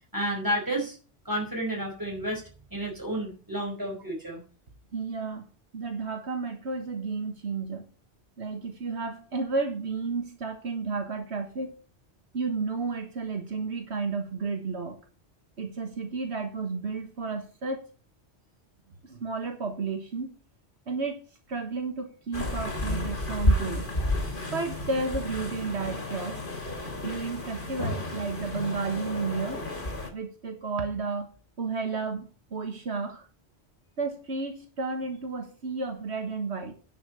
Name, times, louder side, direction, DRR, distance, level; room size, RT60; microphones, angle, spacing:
voice 1, 0.1-1.0 1.3-2.4 2.7-4.4, right 1 dB, 20° right, 0 dB, 5.5 m, -31 dB
voice 2, 4.9-5.5 5.7-7.8 8.4-11.7 12.3-15.0 15.6-17.8 19.0-20.3 20.9-21.2 21.5-23.9 24.5-26.4 27.0-29.6 30.1-31.3 31.6-33.3 34.0-36.7, right 4 dB, 80° right, 5 dB, 1.8 m, -32 dB
sound 1, 22.3-30.1, left 1 dB, 50° left, 2.8 m, -31 dB
10.5 x 6.1 x 8.3 m, 0.37 s
omnidirectional pair, 1.1 m